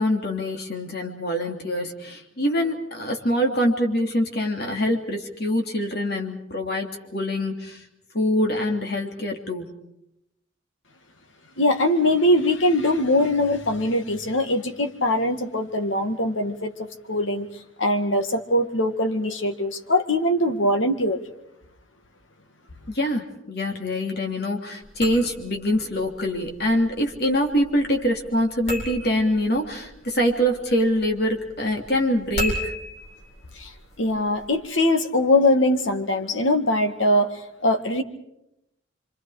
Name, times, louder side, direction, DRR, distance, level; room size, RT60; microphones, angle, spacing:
voice 1, 0.0-7.8 8.1-9.7 22.9-32.7, equal, 55° left, 3.1 m, -24 dB
voice 2, 11.6-17.5 17.8-21.2 33.6-33.7 34.0-37.3 37.6-38.0, left 1 dB, 85° left, 2.0 m, -22 dB
sound 1, 24.8-34.6, equal, 35° left, 5.6 m, -37 dB
28.0 x 25.5 x 5.0 m
head